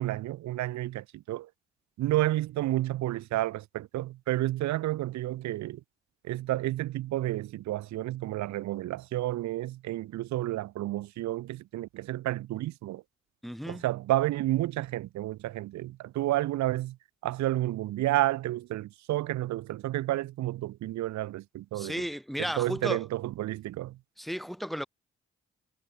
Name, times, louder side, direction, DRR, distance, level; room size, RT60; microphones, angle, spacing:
voice 1, 0.0-1.5 2.0-5.8 6.3-13.0 13.7-17.0 17.2-21.9 22.4-24.0, right 15 dB, 75° right, 0.7 m, -30 dB
voice 2, 13.4-13.8 21.7-23.0 24.2-24.9, equal, ahead, 2.9 m, -34 dB
hypercardioid pair, 40°, 29 cm